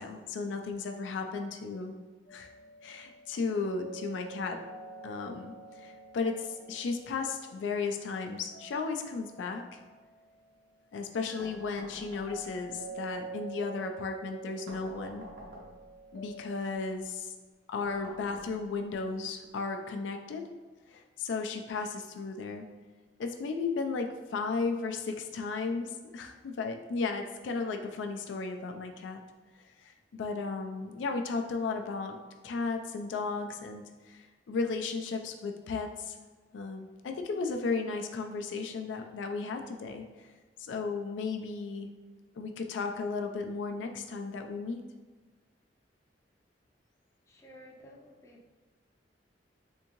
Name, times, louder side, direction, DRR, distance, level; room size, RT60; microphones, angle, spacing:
voice 1, 0.0-2.0 2.3-2.5 2.8-4.6 5.0-9.6 10.9-15.3 16.1-17.3 17.7-20.5 20.9-22.7 23.2-29.2 29.8-32.2 32.4-36.2 36.5-40.0 40.6-41.9 42.4-44.8, left 4 dB, 80° left, 4 dB, 0.3 m, -35 dB
sound 1, 2.3-16.8, right 3 dB, 45° left, 0.7 m, -48 dB
sound 2, 11.4-12.7 14.7-16.0 17.8-19.0, equal, 55° right, 0.7 m, -49 dB
voice 2, 47.3-48.4, equal, 15° left, -2 dB, 0.4 m, -53 dB
3.5 x 2.6 x 2.9 m, 1.3 s
head